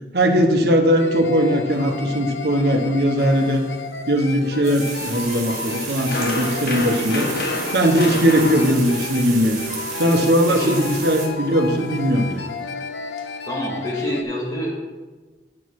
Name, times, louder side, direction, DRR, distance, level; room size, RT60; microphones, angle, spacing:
voice 1, 0.1-3.6 4.1-7.3 7.7-9.6 10.0-12.4, equal, 65° right, 4 dB, 1.1 m, -19 dB
sound 1, 1.0-14.2, left 5 dB, 80° left, 0.7 m, -33 dB
sound 2, 3.2-13.3, left 1 dB, 60° left, 1.0 m, -32 dB
sound 3, 4.6-11.3, right 4 dB, 45° right, 2.2 m, -33 dB
voice 2, 13.5-14.8, equal, 20° left, -4 dB, 2.2 m, -27 dB
9.8 x 6.4 x 4.7 m, 1.3 s
head